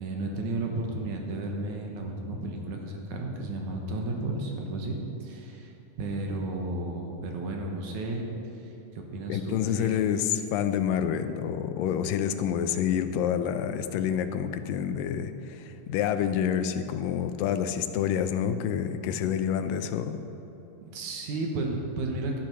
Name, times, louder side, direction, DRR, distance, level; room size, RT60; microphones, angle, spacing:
voice 1, 0.0-5.7 6.0-8.3 8.6-10.0 20.8-22.4, right 2 dB, 70° right, 1 dB, 2.5 m, -33 dB
voice 2, 9.3-20.2, left 9 dB, 85° left, 9 dB, 2.3 m, -28 dB
12.0 x 10.5 x 5.9 m, 2.9 s
omnidirectional pair, 3.9 m